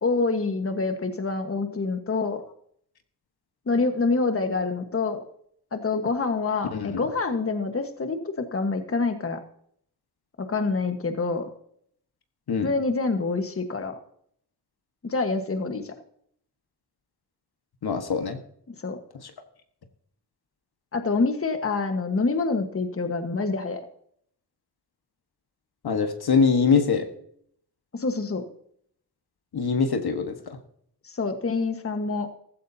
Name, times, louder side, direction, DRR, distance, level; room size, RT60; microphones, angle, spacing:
voice 1, 0.0-2.4 3.7-5.2 5.7-9.4 10.4-11.5 12.6-14.0 15.0-15.9 18.7-19.0 20.9-23.8 27.9-28.4 31.0-32.3, left 3 dB, 35° left, 6 dB, 1.4 m, -26 dB
voice 2, 17.8-18.4 25.8-27.1 29.5-30.6, left 5 dB, 65° left, 6 dB, 1.5 m, -23 dB
15.0 x 14.0 x 2.8 m, 0.66 s
cardioid pair, 85°, 41 cm